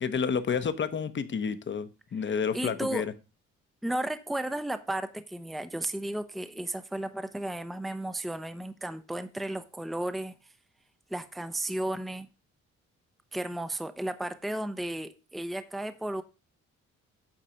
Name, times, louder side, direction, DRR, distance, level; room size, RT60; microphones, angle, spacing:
voice 1, 0.0-3.1, left 6 dB, 40° left, 0.9 m, -30 dB
voice 2, 2.2-3.1 3.8-10.3 11.1-12.3 13.3-16.2, right 1 dB, ahead, 0.6 m, -34 dB
8.9 x 4.1 x 5.1 m
cardioid pair, 90°, 30 cm